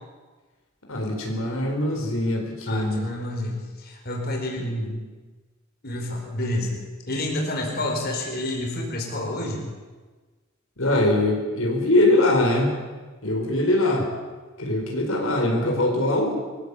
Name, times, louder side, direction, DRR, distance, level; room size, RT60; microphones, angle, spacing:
voice 1, 0.9-3.1 4.6-5.0 10.8-12.7 13.2-14.1 14.6-16.4, left 1 dB, 75° left, 1 dB, 4.7 m, -22 dB
voice 2, 2.7-4.7 5.8-6.7 7.1-9.6, left 1 dB, 50° left, 1 dB, 4.7 m, -29 dB
24.0 x 16.0 x 8.5 m, 1.3 s
head